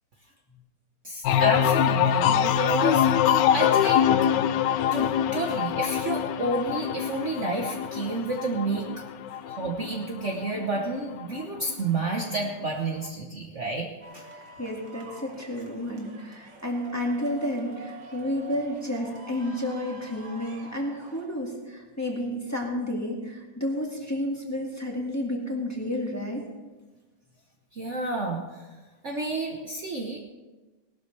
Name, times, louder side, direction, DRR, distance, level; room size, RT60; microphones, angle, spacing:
voice 1, 1.0-3.1 3.5-4.1 4.9-8.9 9.4-13.9 14.1-14.2 27.7-28.6 29.0-30.2, right 2 dB, 45° right, 0 dB, 1.4 m, -30 dB
sound 1, 1.2-10.8 11.2-11.7, left 9 dB, 75° left, 1.2 m, -24 dB
sound 2, 14.0-21.3, right 3 dB, 80° right, 2.4 m, -46 dB
voice 2, 14.3-26.4, left 1 dB, 10° left, -2 dB, 2.0 m, -31 dB
18.5 x 12.5 x 3.4 m, 1.2 s
omnidirectional pair, 2.0 m